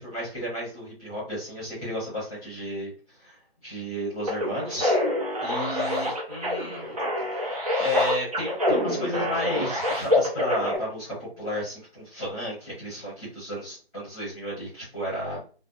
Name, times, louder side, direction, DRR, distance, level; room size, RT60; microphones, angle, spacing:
voice 1, 0.0-5.0 5.4-6.9 7.3-15.4, equal, 15° left, -8 dB, 0.9 m, -33 dB
sound 1, 4.3-10.8, left 1 dB, 35° right, 0.7 m, -26 dB
2.6 x 2.1 x 2.3 m, 0.39 s
figure-of-eight pair, 160°, 31 cm